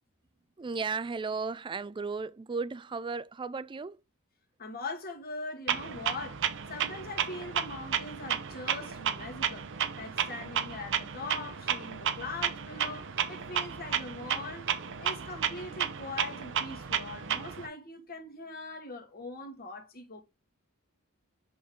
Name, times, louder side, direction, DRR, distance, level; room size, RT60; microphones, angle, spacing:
voice 1, 0.6-4.0, right 4 dB, 20° right, 0.3 m, -35 dB
voice 2, 4.6-6.4 6.7-9.7 10.0-14.7 15.0-20.2, left 3 dB, 45° left, 1.8 m, -41 dB
Clock, 5.7-17.7, right 8 dB, 60° right, 0.8 m, -33 dB
7.6 x 3.8 x 3.8 m
head